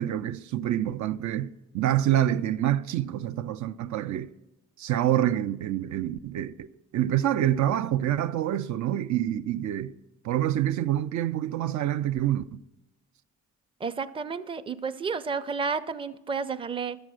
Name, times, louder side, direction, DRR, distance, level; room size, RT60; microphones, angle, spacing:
voice 1, 0.0-4.3 4.8-6.7 6.9-9.9 10.2-12.6, right 12 dB, 70° right, 0.5 m, -27 dB
voice 2, 13.8-17.0, right 5 dB, 20° right, 0.5 m, -31 dB
12.0 x 7.0 x 6.3 m
cardioid pair, 90°, 30 cm